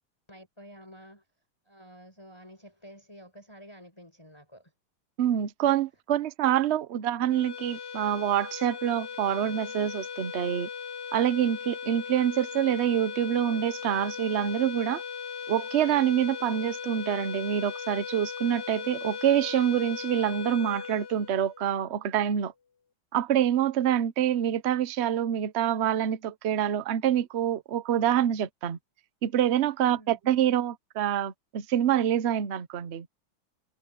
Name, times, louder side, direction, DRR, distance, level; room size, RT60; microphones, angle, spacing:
voice 1, 0.3-1.2 1.6-4.7 29.8-30.2, equal, 10° left, 5.0 m, -50 dB
voice 2, 5.2-10.7 11.1-15.0 15.5-22.5 23.1-28.8 29.2-33.1, right 10 dB, 55° right, 0.7 m, -26 dB
sound 1, 7.3-21.9, left 6 dB, 55° left, 2.4 m, -38 dB
omnidirectional pair, 2.2 m